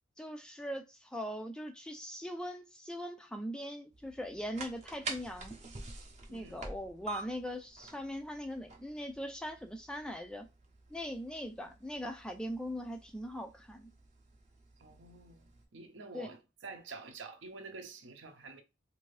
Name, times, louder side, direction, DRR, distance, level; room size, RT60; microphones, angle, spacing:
voice 1, 0.2-5.6 6.3-10.5 10.9-13.9 16.1-16.3, equal, 5° left, 0.3 m, -41 dB
sound 1, 3.9-15.6, right 3 dB, 35° right, 0.7 m, -48 dB
voice 2, 14.8-15.4 15.7-16.4 16.6-18.6, right 4 dB, 70° right, 0.7 m, -48 dB
2.6 x 2.6 x 3.2 m
head